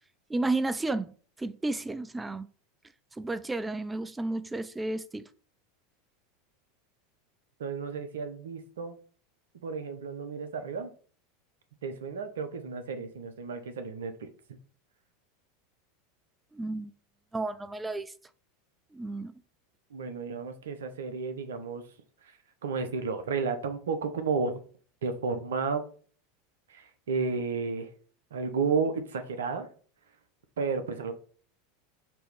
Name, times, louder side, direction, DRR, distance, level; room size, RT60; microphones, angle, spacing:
voice 1, 0.3-2.5 3.1-5.3 16.5-16.9 17.3-18.1 18.9-19.4, right 2 dB, 10° right, 0.4 m, -32 dB
voice 2, 7.6-9.0 9.6-10.9 11.8-14.3 19.9-21.8 22.2-22.4 22.6-24.6 25.0-25.8 26.7-27.9 28.3-29.7 30.6-31.1, right 5 dB, 80° right, 1.0 m, -32 dB
6.0 x 3.1 x 5.2 m
hypercardioid pair, 90°, 0 cm